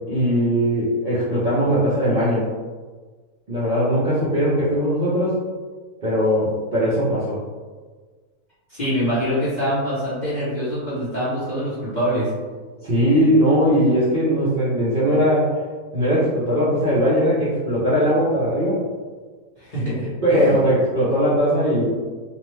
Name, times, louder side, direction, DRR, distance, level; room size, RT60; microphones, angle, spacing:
voice 1, 0.1-2.4 3.5-5.4 6.0-7.4 12.8-15.6 15.9-18.8 20.2-21.9, equal, 50° right, -11 dB, 0.6 m, -19 dB
voice 2, 8.7-12.3 19.6-20.6, equal, 40° left, -11 dB, 0.7 m, -24 dB
2.6 x 2.1 x 3.1 m, 1.4 s
omnidirectional pair, 1.6 m